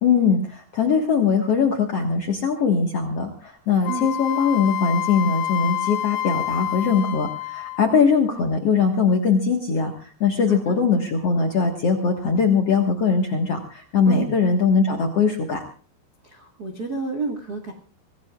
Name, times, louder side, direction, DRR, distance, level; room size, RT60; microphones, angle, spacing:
voice 1, 0.0-15.6, left 5 dB, 60° left, 3 dB, 1.7 m, -21 dB
Wind instrument woodwind instrument, 3.8-8.0, left 12 dB, 80° left, 3.0 m, -28 dB
voice 2, 10.5-10.8 14.1-14.4 16.2-17.7, right 4 dB, 55° right, 1 dB, 1.0 m, -30 dB
25.0 x 17.5 x 2.4 m, 0.39 s
omnidirectional pair, 5.0 m